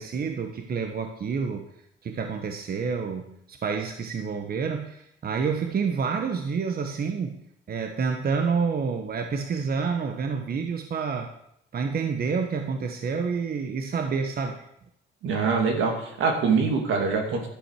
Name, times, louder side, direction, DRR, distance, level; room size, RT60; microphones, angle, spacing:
voice 1, 0.0-1.7 2.0-7.4 7.7-11.3 11.7-14.7, right 5 dB, 50° right, 5 dB, 1.2 m, -28 dB
voice 2, 15.2-17.5, right 5 dB, 80° right, 3 dB, 2.6 m, -24 dB
11.5 x 9.9 x 4.8 m, 0.74 s
cardioid pair, 90°, 20 cm